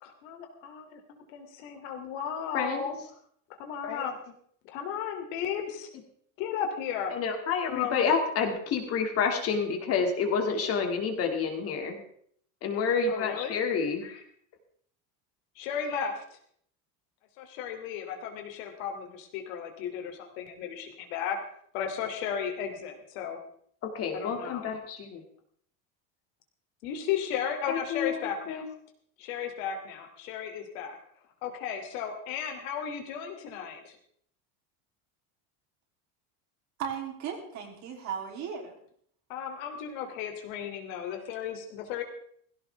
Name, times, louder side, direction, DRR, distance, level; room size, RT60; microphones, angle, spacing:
voice 1, 0.0-3.0 3.6-4.2 4.6-5.9 6.4-7.1 7.6-8.1 13.1-13.6 15.6-16.2 17.4-21.4 21.7-23.4 24.2-24.6 26.8-28.6 29.2-31.0 31.4-34.0 39.3-42.0, left 8 dB, 70° left, 4 dB, 3.1 m, -35 dB
voice 2, 2.5-2.9 3.8-4.1 7.1-12.0 12.6-14.2 23.9-24.8 27.7-28.2 28.5-28.6, left 5 dB, 35° left, 4 dB, 2.4 m, -29 dB
voice 3, 36.8-38.8, right 7 dB, 45° right, 2 dB, 3.3 m, -36 dB
17.5 x 16.5 x 3.5 m, 0.63 s
cardioid pair, 170°, 41 cm